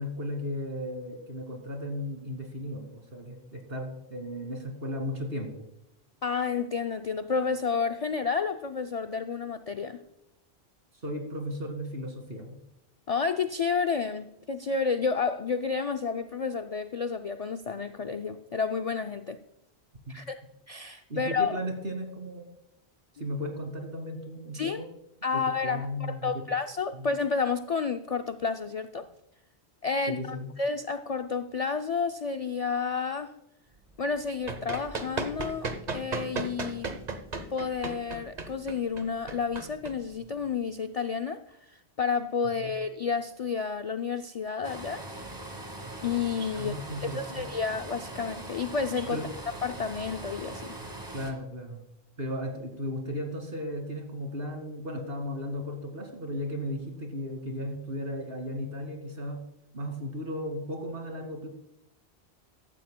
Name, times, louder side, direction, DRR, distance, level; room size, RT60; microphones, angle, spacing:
voice 1, 0.0-5.7 11.0-12.6 20.1-20.2 21.1-22.4 23.1-24.9 25.3-26.3 26.9-27.1 30.1-30.5 42.4-42.8 46.6-47.4 49.1-49.3 51.1-51.8 52.2-59.4 59.7-61.5, equal, 60° right, 3 dB, 2.3 m, -35 dB
voice 2, 6.2-10.0 13.1-19.4 20.1-20.4 20.7-21.6 24.5-24.8 25.2-29.1 29.8-33.3 34.0-36.9 37.5-41.4 41.7-45.0 46.0-46.7 47.0-49.2 49.6-50.8, left 5 dB, 55° left, 8 dB, 0.4 m, -30 dB
Run, 34.1-40.5, right 3 dB, 45° right, 1.0 m, -36 dB
sound 1, 44.6-51.3, right 2 dB, 25° right, 1.4 m, -41 dB
15.0 x 12.5 x 2.2 m, 0.85 s
omnidirectional pair, 1.1 m